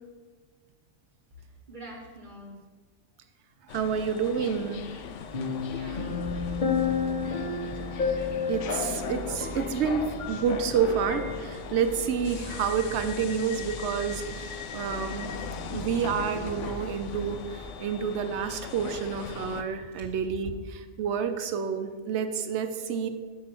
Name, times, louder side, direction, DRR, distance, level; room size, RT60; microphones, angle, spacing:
voice 1, 1.4-2.6 5.6-7.9, equal, 45° right, -1 dB, 1.1 m, -46 dB
sound 1, 3.7-19.6, left 7 dB, 80° left, 0.9 m, -39 dB
voice 2, 3.7-4.9 8.5-15.3 15.7-20.5 21.0-23.1, right 7 dB, 70° right, 9 dB, 0.9 m, -29 dB
sound 2, 5.3-10.8 11.1-11.3, left 5 dB, 45° left, 0.9 m, -31 dB
sound 3, 5.7-18.0, right 1 dB, 10° left, 0.8 m, -43 dB
6.5 x 4.8 x 5.9 m, 1.5 s
omnidirectional pair, 1.3 m